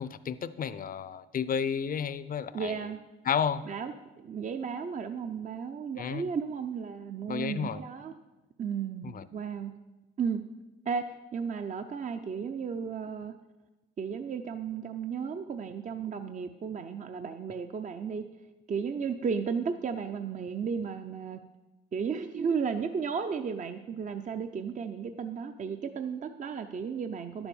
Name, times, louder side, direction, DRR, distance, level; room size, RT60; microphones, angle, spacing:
voice 1, 0.0-2.8 3.3-3.6 5.9-6.2 7.3-7.8 9.0-9.2, left 7 dB, 45° left, 15 dB, 0.6 m, -32 dB
voice 2, 2.5-3.0 3.7-8.1 8.6-9.7 10.2-10.4 10.9-13.3 14.0-18.2 18.7-21.4 21.9-27.5, right 6 dB, 40° right, 7 dB, 0.6 m, -34 dB
10.5 x 7.0 x 7.1 m, 1.1 s
cardioid pair, 90°, 20 cm